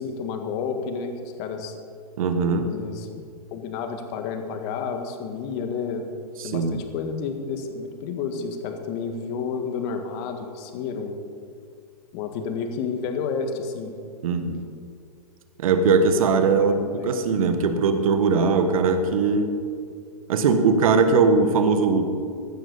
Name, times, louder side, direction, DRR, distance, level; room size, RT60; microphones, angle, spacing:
voice 1, 0.0-1.8 2.6-3.2 3.5-6.1 6.4-11.2 12.1-13.9 16.5-17.1, left 5 dB, 45° left, 6 dB, 1.7 m, -31 dB
voice 2, 2.2-2.7 6.4-6.8 14.2-14.6 15.6-19.5 20.3-22.1, right 4 dB, 65° right, 8 dB, 1.5 m, -20 dB
15.5 x 12.5 x 4.1 m, 2.3 s
hypercardioid pair, 115°, 19 cm